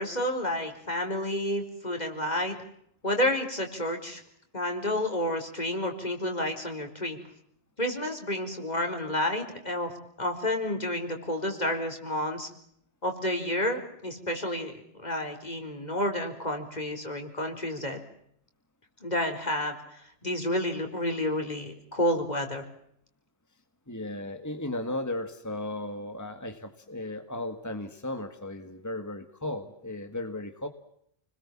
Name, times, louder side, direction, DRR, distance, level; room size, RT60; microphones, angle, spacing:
voice 1, 0.0-2.6 3.0-4.2 4.5-7.2 7.8-9.9 10.2-12.5 13.0-18.0 19.0-22.6, left 1 dB, 45° left, 5 dB, 4.5 m, -30 dB
voice 2, 23.9-30.7, left 1 dB, 15° left, 7 dB, 1.8 m, -35 dB
30.0 x 21.5 x 7.3 m, 0.71 s
omnidirectional pair, 1.0 m